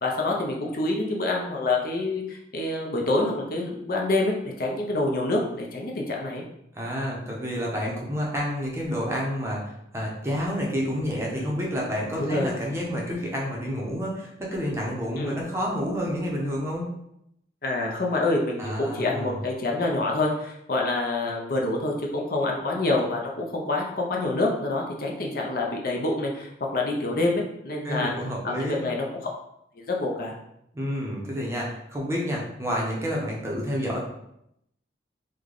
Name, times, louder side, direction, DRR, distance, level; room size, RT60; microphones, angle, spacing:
voice 1, 0.0-6.4 11.4-11.5 12.2-12.5 15.2-15.4 17.6-29.0 29.8-30.4, left 2 dB, 50° left, 0 dB, 0.5 m, -27 dB
voice 2, 6.7-16.9 18.6-19.4 27.8-28.8 30.7-34.0, equal, 15° right, -3 dB, 0.6 m, -29 dB
3.2 x 2.2 x 3.7 m, 0.78 s
head